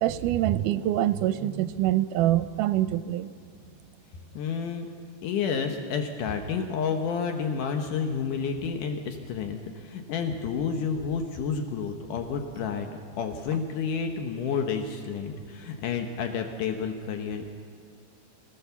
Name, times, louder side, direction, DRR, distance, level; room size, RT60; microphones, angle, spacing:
voice 1, 0.0-3.3, right 13 dB, 85° right, 12 dB, 2.2 m, -25 dB
voice 2, 4.3-4.9 5.2-12.9 13.2-17.5, left 6 dB, 80° left, 4 dB, 2.6 m, -30 dB
24.0 x 16.5 x 7.0 m, 2.3 s
omnidirectional pair, 3.7 m